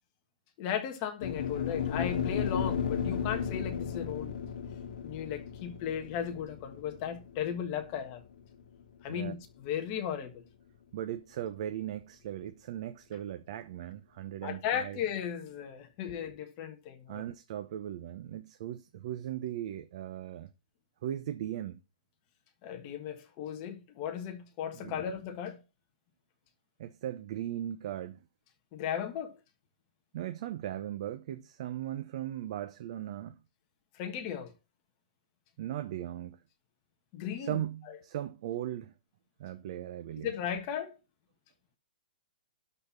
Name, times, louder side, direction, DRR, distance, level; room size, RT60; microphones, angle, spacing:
voice 1, 0.6-4.4 5.0-8.2 9.0-10.3 14.4-17.2 22.6-25.6 28.7-29.3 34.0-34.5 37.1-37.6 40.2-40.9, left 9 dB, 30° left, 1.4 m, -36 dB
sound 1, 1.2-9.4, left 7 dB, 65° left, 1.7 m, -35 dB
voice 2, 10.9-15.0 17.1-20.5 21.0-21.8 24.7-25.1 26.8-28.2 30.1-33.4 35.6-36.4 37.4-38.9 39.4-40.3, right 11 dB, 45° right, 0.9 m, -38 dB
12.0 x 4.3 x 7.1 m
hypercardioid pair, 165°, 5 cm